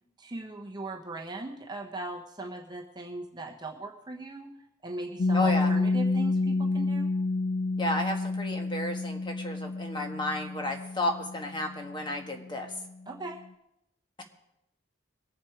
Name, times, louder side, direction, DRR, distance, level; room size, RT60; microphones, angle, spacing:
voice 1, 0.2-4.5 4.8-7.1 13.1-13.4, right 2 dB, 20° right, 1 dB, 1.0 m, -39 dB
Piano, 5.2-12.5, left 3 dB, 45° left, 0.4 m, -29 dB
voice 2, 5.3-5.7 7.8-12.7 14.2-14.3, left 2 dB, 25° left, 3 dB, 1.5 m, -32 dB
22.0 x 7.5 x 4.8 m, 0.84 s
head